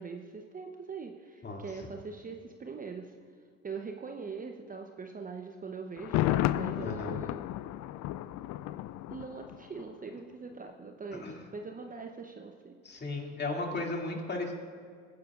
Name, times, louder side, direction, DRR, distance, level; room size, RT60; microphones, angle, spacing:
voice 1, 0.0-3.1 3.6-7.4 9.1-13.0, right 5 dB, 20° right, 4 dB, 0.9 m, -42 dB
Thunder, 6.0-9.9 10.2-10.3, left 14 dB, 50° left, 0.5 m, -32 dB
voice 2, 6.8-7.1 11.2-11.4 12.8-14.5, left 2 dB, 30° left, 0 dB, 2.5 m, -35 dB
22.5 x 9.6 x 2.5 m, 2.1 s
hypercardioid pair, 70°, 37 cm